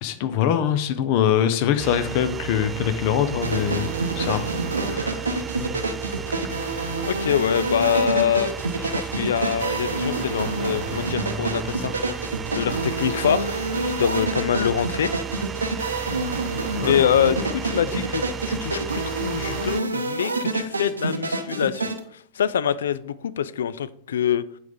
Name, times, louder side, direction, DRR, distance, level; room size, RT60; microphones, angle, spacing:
voice 1, 0.0-3.9 4.2-4.4 4.8-5.2 16.8-16.9, left 9 dB, 45° left, 0.7 m, -23 dB
sound 1, 1.8-19.8, right 7 dB, 20° right, 0.3 m, -33 dB
sound 2, 3.4-22.0, right 2 dB, 80° right, 0.7 m, -28 dB
voice 2, 7.0-8.5 8.8-11.9 12.5-13.6 13.8-15.1 16.8-21.9 22.4-24.4, left 8 dB, 65° left, 0.3 m, -24 dB
7.6 x 5.0 x 3.7 m
figure-of-eight pair, 90°, 0 cm